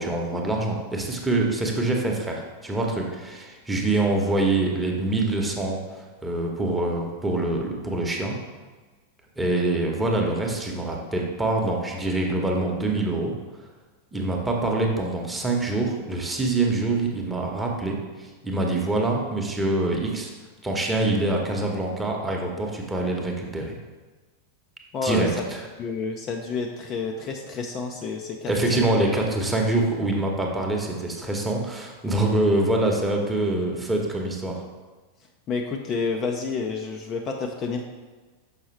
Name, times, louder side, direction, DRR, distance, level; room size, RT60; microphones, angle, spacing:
voice 1, 0.0-8.4 9.4-13.4 14.1-20.3 20.6-23.8 25.0-25.6 28.4-34.6, right 2 dB, 10° right, 0 dB, 1.0 m, -25 dB
voice 2, 24.9-25.5 25.8-28.9 35.5-37.8, left 4 dB, 30° left, 2 dB, 0.5 m, -29 dB
6.6 x 5.3 x 3.2 m, 1.3 s
figure-of-eight pair, 90°, 0 cm